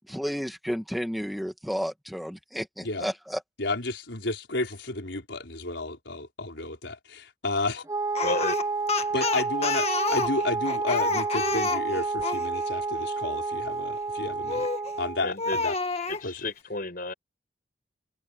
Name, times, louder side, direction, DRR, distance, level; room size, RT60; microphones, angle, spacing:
voice 1, 0.1-3.4, equal, ahead, 2.2 m, -32 dB
voice 2, 3.6-7.8 9.1-14.7 15.0-15.7 16.2-16.3, left 2 dB, 80° left, 4.6 m, -32 dB
Wind instrument woodwind instrument, 7.9-15.3, right 4 dB, 15° right, 0.5 m, -30 dB
Speech, 8.1-12.5 14.5-14.9 15.4-16.2, left 4 dB, 35° left, 1.9 m, -29 dB
voice 3, 8.2-8.6 15.2-15.7 16.1-17.1, left 2 dB, 50° left, 6.4 m, -32 dB
head